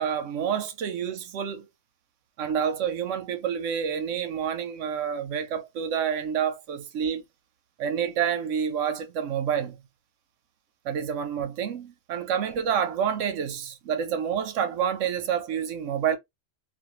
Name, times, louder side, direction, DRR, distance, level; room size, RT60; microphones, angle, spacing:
voice 1, 0.0-1.7 2.4-7.2 7.8-9.8 10.8-16.2, right 8 dB, 70° right, 0.9 m, -28 dB
2.5 x 2.4 x 2.9 m
omnidirectional pair, 1.4 m